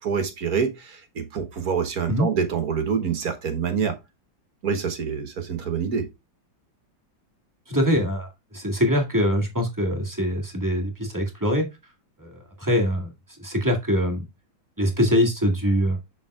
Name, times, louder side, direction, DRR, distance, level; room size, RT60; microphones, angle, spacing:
voice 1, 0.0-4.0 4.6-6.1, right 6 dB, 55° right, 1.5 m, -26 dB
voice 2, 7.7-11.7 12.2-13.1 13.4-14.2 14.8-16.0, equal, 10° right, 1.8 m, -23 dB
7.1 x 7.0 x 2.4 m
omnidirectional pair, 2.1 m